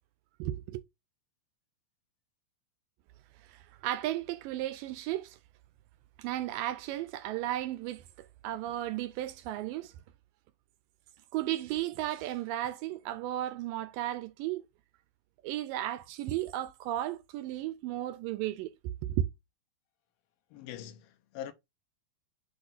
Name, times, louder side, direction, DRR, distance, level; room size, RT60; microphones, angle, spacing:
voice 1, 0.4-0.8 3.5-5.4 6.2-9.9 11.3-14.6 15.4-19.3, right 13 dB, 80° right, 2.1 m, -34 dB
voice 2, 20.5-21.5, left 10 dB, 80° left, 2.5 m, -43 dB
8.0 x 3.0 x 4.1 m
omnidirectional pair, 4.2 m